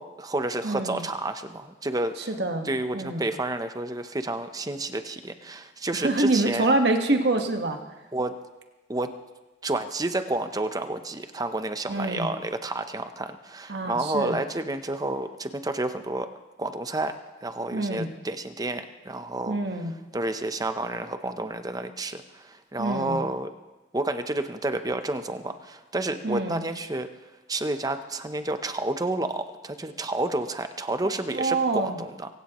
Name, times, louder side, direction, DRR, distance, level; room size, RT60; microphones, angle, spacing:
voice 1, 0.0-2.3 2.6-6.7 8.1-8.3 8.9-9.2 9.6-16.3 16.6-19.6 20.1-23.5 23.9-27.1 27.5-32.3, right 2 dB, 20° right, 9 dB, 0.8 m, -30 dB
voice 2, 0.6-1.0 2.3-2.7 2.9-3.2 5.9-7.8 11.9-12.3 13.7-14.4 17.7-18.1 19.5-19.9 22.8-23.2 26.2-26.6 31.3-32.0, right 2 dB, 65° right, 4 dB, 1.5 m, -26 dB
25.0 x 17.0 x 3.1 m, 1.1 s
head